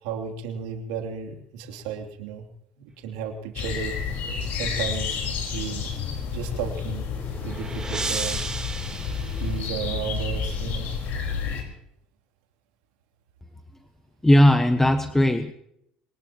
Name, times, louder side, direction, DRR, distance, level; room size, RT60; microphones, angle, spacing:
voice 1, 0.0-2.4 2.8-4.0 4.6-5.2 5.5-5.8 6.3-7.1 7.4-8.4 9.4-10.9, right 6 dB, 80° right, 3 dB, 2.9 m, -33 dB
sound 1, 3.6-11.6, left 6 dB, 60° left, 4.5 m, -30 dB
sound 2, 6.9-10.2, right 3 dB, 20° right, 3.3 m, -34 dB
voice 2, 14.2-15.5, left 1 dB, 10° left, 9 dB, 1.2 m, -17 dB
23.5 x 20.0 x 3.0 m, 0.75 s
hypercardioid pair, 75°, 3 cm